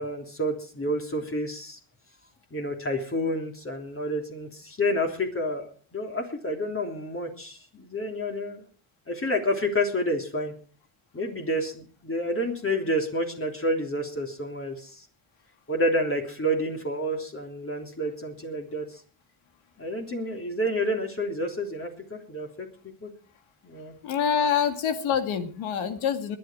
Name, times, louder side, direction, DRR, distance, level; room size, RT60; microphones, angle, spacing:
voice 1, 0.0-1.8 2.5-5.7 5.9-8.6 9.1-10.5 11.1-15.0 15.7-19.0 19.8-22.7 23.0-23.1 23.6-23.9, equal, 30° left, 2 dB, 3.3 m, -29 dB
voice 2, 24.0-26.4, left 7 dB, 85° left, 7 dB, 2.3 m, -26 dB
21.5 x 10.0 x 4.6 m, 0.41 s
cardioid pair, 105°, 47 cm